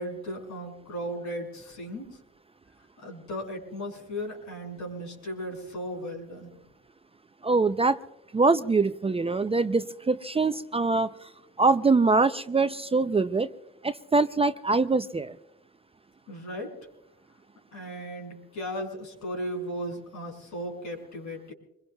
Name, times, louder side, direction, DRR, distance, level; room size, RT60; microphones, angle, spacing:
voice 1, 0.0-2.2 3.0-6.5 16.3-16.8 17.7-21.5, equal, 70° left, 0 dB, 6.2 m, -36 dB
voice 2, 7.4-8.0 8.3-11.3 11.6-13.5 13.8-15.4, right 3 dB, 20° right, 10 dB, 0.5 m, -24 dB
25.5 x 22.0 x 2.3 m, 0.84 s
cardioid pair, 90°, 30 cm